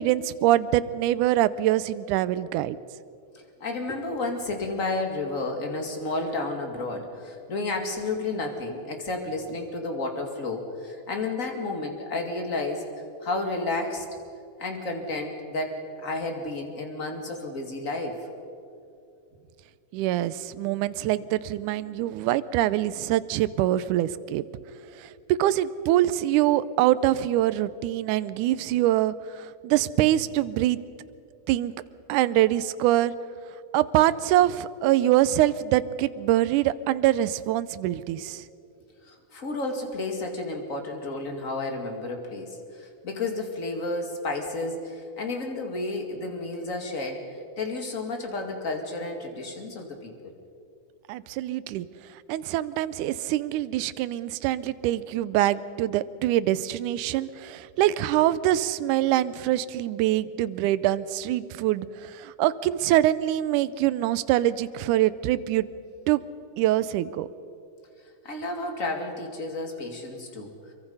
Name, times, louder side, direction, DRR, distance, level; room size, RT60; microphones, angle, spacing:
voice 1, 0.0-2.8 19.9-24.4 25.0-30.8 31.5-31.7 32.1-33.1 33.7-38.4 51.1-51.9 52.3-65.7 66.1-66.2 66.6-67.3, right 14 dB, 80° right, 15 dB, 2.1 m, -24 dB
voice 2, 3.6-12.9 13.2-14.1 14.6-18.2 39.0-47.3 47.6-50.3 68.2-70.5, left 2 dB, 30° left, 3 dB, 2.3 m, -31 dB
26.0 x 23.5 x 5.6 m, 2.5 s
omnidirectional pair, 3.6 m